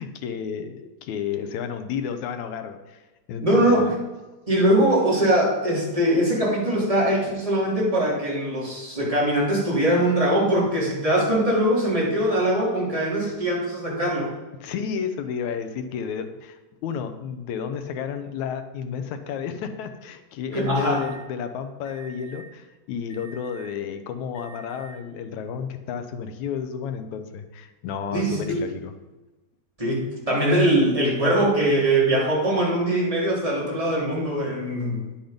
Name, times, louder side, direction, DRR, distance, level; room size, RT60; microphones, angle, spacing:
voice 1, 0.0-3.9 14.6-28.9, left 7 dB, 75° left, 8 dB, 2.0 m, -32 dB
voice 2, 3.4-3.9 4.5-14.3 20.5-21.0 28.1-28.6 29.8-35.0, right 1 dB, 10° right, -5 dB, 3.0 m, -22 dB
Alarm, 20.6-21.2 21.8-22.4 23.1-23.7 24.3-24.9, right 4 dB, 50° left, 3.3 m, -47 dB
10.0 x 8.0 x 5.2 m, 1.1 s
omnidirectional pair, 3.6 m